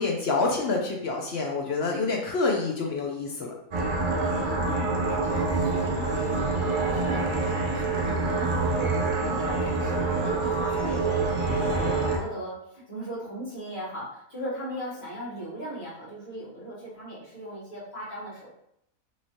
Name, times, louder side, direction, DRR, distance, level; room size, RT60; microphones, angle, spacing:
voice 1, 0.0-3.5, left 3 dB, 65° left, 0 dB, 0.6 m, -27 dB
sound 1, 3.7-12.2, right 3 dB, 55° right, 0.6 m, -26 dB
voice 2, 4.4-18.5, equal, 50° left, -8 dB, 1.7 m, -38 dB
3.1 x 3.1 x 2.6 m, 0.75 s
omnidirectional pair, 1.5 m